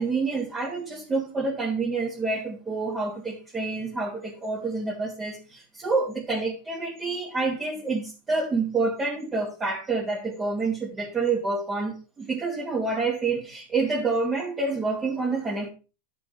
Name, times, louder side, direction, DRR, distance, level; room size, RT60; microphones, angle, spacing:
voice 1, 0.0-15.7, right 3 dB, 15° right, 2.4 m, -28 dB
11.5 x 6.9 x 3.4 m
supercardioid pair, 145°, 0 cm